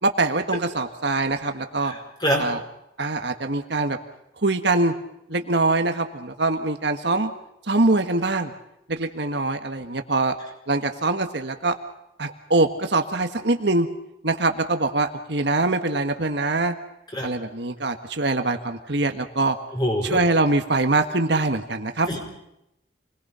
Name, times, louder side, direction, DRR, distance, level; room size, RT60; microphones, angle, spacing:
voice 1, 0.0-1.9 2.4-2.6 3.0-4.0 4.4-4.9 5.3-7.3 7.6-8.5 8.9-10.3 10.7-11.7 12.2-13.9 14.2-16.7 17.2-19.6 20.1-22.1, right 2 dB, 60° right, 6 dB, 1.6 m, -23 dB
voice 2, 1.8-2.5 17.1-17.3 19.7-20.3 22.1-22.2, equal, 20° left, 1 dB, 5.2 m, -25 dB
28.0 x 21.0 x 5.6 m, 0.83 s
head